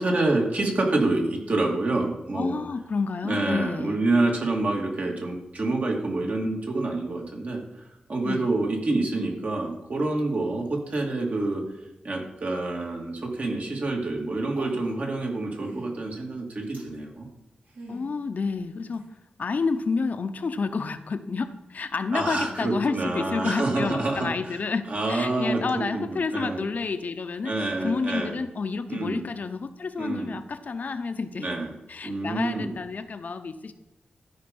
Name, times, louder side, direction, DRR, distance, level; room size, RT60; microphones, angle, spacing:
voice 1, 0.0-2.6 3.2-7.6 8.1-11.6 12.0-17.3 22.1-24.6 24.9-26.6 27.4-28.4 28.9-29.2 30.0-30.4 31.4-31.7 32.0-32.8, right 2 dB, 55° right, 0 dB, 2.4 m, -27 dB
voice 2, 2.3-4.0 8.2-8.5 17.9-19.1 19.4-27.5 27.8-31.5 31.9-33.7, left 4 dB, 60° left, 9 dB, 0.7 m, -29 dB
sound 1, 14.4-15.1 15.6-15.9 16.7-16.9 17.7-18.1 18.9-19.0, right 2 dB, 75° right, 2.6 m, -43 dB
13.5 x 5.2 x 5.4 m, 0.94 s
wide cardioid pair, 85°, 3 cm